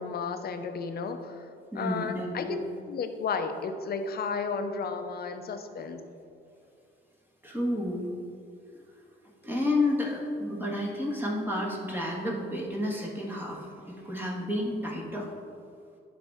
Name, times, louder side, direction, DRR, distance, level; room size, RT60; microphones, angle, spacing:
voice 1, 0.0-1.5 1.8-2.6 2.9-6.0, left 5 dB, 50° left, 7 dB, 0.7 m, -33 dB
voice 2, 1.7-2.5 7.4-8.1 8.7-8.8 9.4-15.3, left 1 dB, 10° right, -3 dB, 1.7 m, -31 dB
10.5 x 4.2 x 3.5 m, 2.4 s
cardioid pair, 90°, 20 cm